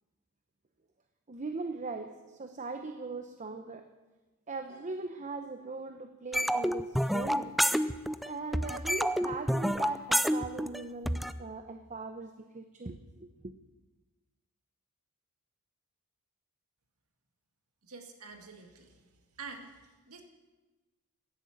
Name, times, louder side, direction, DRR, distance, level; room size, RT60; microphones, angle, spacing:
voice 1, 1.3-3.9 4.5-7.6 8.2-13.5, right 3 dB, 35° right, 0.8 m, -40 dB
sound 1, 6.3-8.3 8.5-11.3, equal, ahead, 0.4 m, -28 dB
voice 2, 17.8-19.1 19.4-20.2, right 4 dB, 75° right, 2.1 m, -47 dB
17.0 x 11.0 x 7.2 m
head